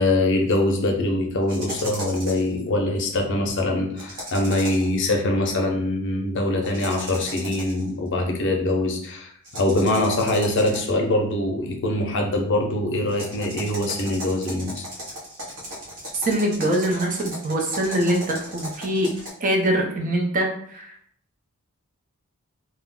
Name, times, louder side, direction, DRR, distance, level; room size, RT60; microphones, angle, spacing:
voice 1, 0.0-14.9, left 1 dB, 55° left, 2 dB, 0.6 m, -23 dB
sound 1, 1.5-2.5 4.0-5.0 6.6-7.9 9.4-11.0 13.1-19.3, equal, 75° right, 0.9 m, -36 dB
voice 2, 16.2-19.1 19.4-20.9, right 1 dB, 40° right, 1 dB, 0.5 m, -23 dB
2.2 x 2.1 x 3.6 m, 0.63 s
head